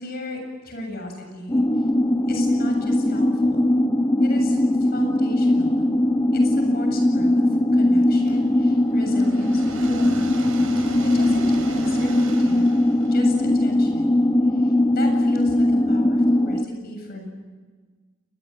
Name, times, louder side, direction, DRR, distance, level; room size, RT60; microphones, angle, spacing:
voice 1, 0.0-1.6 2.3-3.7 4.2-5.9 6.3-7.4 7.7-10.3 10.8-12.7 13.1-14.2 14.6-17.3, left 1 dB, 50° left, 3 dB, 7.6 m, -36 dB
sound 1, 1.5-16.6, left 1 dB, 15° left, 0.8 m, -20 dB
sound 2, 8.3-14.2, right 2 dB, 85° right, 6.0 m, -38 dB
29.5 x 21.5 x 8.8 m, 1.4 s
head